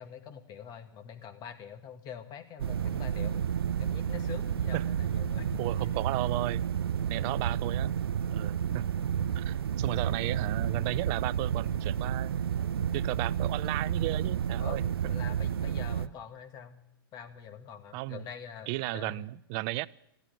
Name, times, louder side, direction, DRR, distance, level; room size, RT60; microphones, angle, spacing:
voice 1, 0.0-3.4 3.8-6.1 9.1-9.5 9.9-10.4 14.6-16.8 17.1-19.3, left 8 dB, 35° left, 8 dB, 1.9 m, -45 dB
sound 1, 2.6-16.1, right 9 dB, 85° right, 0.6 m, -31 dB
voice 2, 5.6-6.7 7.1-7.9 8.3-8.9 9.3-12.4 12.9-14.8 17.9-18.2 18.7-19.9, right 20 dB, 40° right, 19 dB, 0.5 m, -34 dB
14.5 x 11.0 x 9.2 m, 0.78 s
hypercardioid pair, 120°, 12 cm